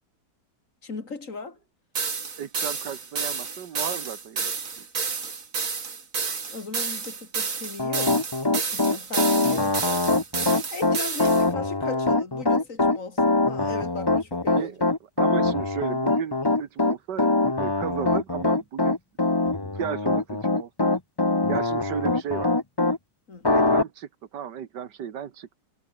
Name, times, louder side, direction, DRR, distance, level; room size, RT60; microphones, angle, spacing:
voice 1, 0.8-1.6 6.3-8.2 8.7-10.1 10.4-14.7 17.2-17.3 23.3-23.5, left 4 dB, 50° left, 3.1 m, -38 dB
sound 1, 2.0-11.5, right 5 dB, 50° right, 2.5 m, -30 dB
voice 2, 2.4-4.9 14.6-19.0 19.7-20.9 21.5-22.5 23.5-25.5, right 9 dB, 85° right, 2.0 m, -34 dB
Piano, 7.8-23.0 23.4-23.8, left 2 dB, 15° left, 1.2 m, -23 dB
omnidirectional pair, 1.8 m